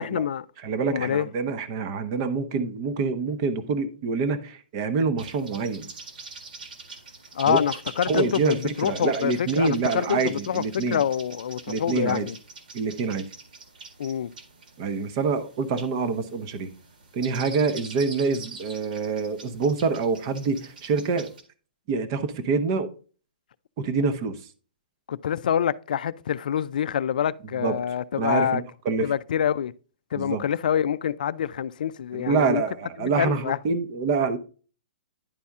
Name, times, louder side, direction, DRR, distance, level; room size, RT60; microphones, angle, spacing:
voice 1, 0.0-0.5 0.9-1.3 7.3-12.4 14.0-14.3 25.1-28.6 29.0-29.7 30.1-32.6 33.0-33.6, left 9 dB, 60° left, 0.4 m, -26 dB
voice 2, 0.6-5.9 7.5-7.6 8.1-11.0 11.7-12.3 12.7-13.2 14.8-16.7 17.1-21.3 21.9-22.9 23.8-24.4 27.6-27.8 28.2-29.1 30.1-30.4 32.1-34.4, right 4 dB, 30° right, 0.8 m, -26 dB
sound 1, 5.2-21.4, right 4 dB, 65° right, 1.8 m, -44 dB
10.5 x 4.2 x 3.6 m
hypercardioid pair, 170°, 5 cm